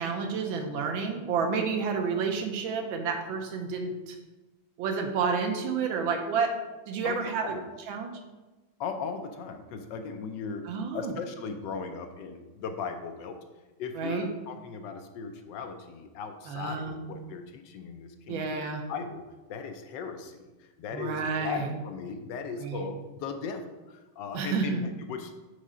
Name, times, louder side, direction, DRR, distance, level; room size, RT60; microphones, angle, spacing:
voice 1, 0.0-4.2 4.8-6.5 6.9-7.6 7.9-8.1 10.7-11.1 14.0-14.3 16.5-17.0 18.3-18.8 20.9-21.7 22.6-22.8 24.3-24.8, right 5 dB, 80° right, 4 dB, 1.5 m, -30 dB
voice 2, 7.0-7.7 8.8-10.6 10.9-13.4 13.8-18.6 18.9-19.2 19.5-25.3, left 5 dB, 75° left, 6 dB, 1.1 m, -38 dB
4.9 x 3.9 x 5.4 m, 1.2 s
omnidirectional pair, 2.2 m